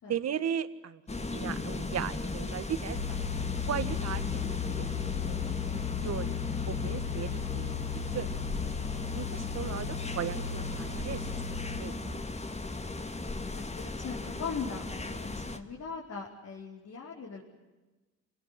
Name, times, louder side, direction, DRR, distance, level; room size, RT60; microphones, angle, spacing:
voice 1, 0.1-3.0 3.7-4.2 4.7-4.8 5.3-5.4 6.0-6.4 6.7-7.8 8.1-8.5 9.1-11.3 11.8-12.0, right 9 dB, 60° right, 12 dB, 1.7 m, -36 dB
sound 1, 1.1-15.6, left 3 dB, 20° left, 2.3 m, -36 dB
sound 2, 2.9-11.8, left 10 dB, 90° left, 2.1 m, -36 dB
voice 2, 13.5-17.4, left 5 dB, 60° left, -2 dB, 4.8 m, -40 dB
27.5 x 18.5 x 9.7 m, 1.2 s
cardioid pair, 90°, 30 cm